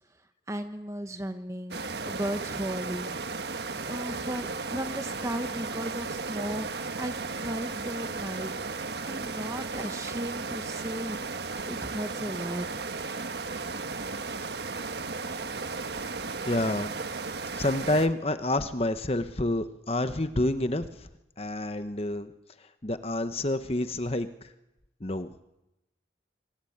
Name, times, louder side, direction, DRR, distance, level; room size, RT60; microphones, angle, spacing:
voice 1, 0.5-3.2 3.9-6.7 6.9-8.5 9.0-11.2 11.7-12.7, equal, 15° right, 8 dB, 1.2 m, -35 dB
sound 1, 1.7-18.1, right 4 dB, 70° right, 1.4 m, -35 dB
voice 2, 16.5-16.9 17.5-20.9 21.4-22.3 22.8-24.3 25.0-25.3, left 1 dB, 35° left, 10 dB, 1.1 m, -28 dB
25.5 x 25.0 x 8.7 m, 0.91 s
head